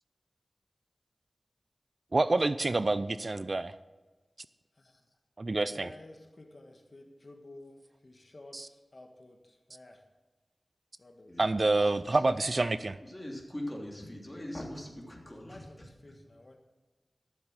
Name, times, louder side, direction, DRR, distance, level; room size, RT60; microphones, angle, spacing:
voice 1, 2.1-3.7 5.4-5.9 8.5-8.7 11.4-13.0, right 2 dB, 50° right, 14 dB, 0.4 m, -27 dB
voice 2, 4.7-5.2 5.5-10.0 11.0-11.3 15.2-16.6, left 2 dB, 50° left, 4 dB, 1.4 m, -53 dB
voice 3, 12.1-12.4 13.0-15.9, left 1 dB, 15° left, -1 dB, 3.1 m, -41 dB
13.5 x 7.3 x 6.4 m, 1.2 s
wide cardioid pair, 55°, 0 cm